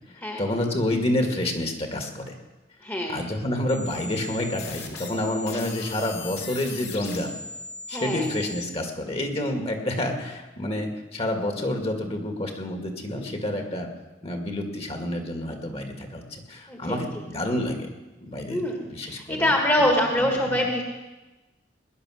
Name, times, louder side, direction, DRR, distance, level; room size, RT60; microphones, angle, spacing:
voice 1, 0.1-2.3 3.1-7.3 7.9-13.9 14.2-17.9 18.2-20.6, left 1 dB, 35° left, 3 dB, 2.1 m, -29 dB
voice 2, 2.8-3.2 7.9-8.3 16.7-17.0 18.5-20.8, left 1 dB, 15° left, 1 dB, 1.6 m, -24 dB
sound 1, 3.7-8.7, left 4 dB, 70° left, 2.4 m, -38 dB
19.5 x 10.5 x 6.5 m, 1.1 s
head